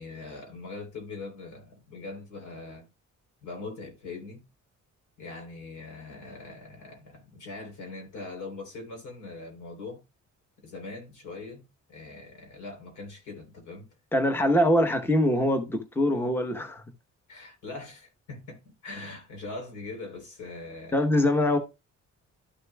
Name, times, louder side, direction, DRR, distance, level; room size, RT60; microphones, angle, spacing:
voice 1, 0.0-2.9 3.4-4.4 5.2-10.0 10.6-11.6 11.9-13.9 17.3-20.9, left 3 dB, 75° left, 3.7 m, -41 dB
voice 2, 14.1-16.8 20.9-21.6, left 1 dB, 5° left, 1.0 m, -23 dB
12.5 x 6.5 x 2.3 m
cardioid pair, 90°, 30 cm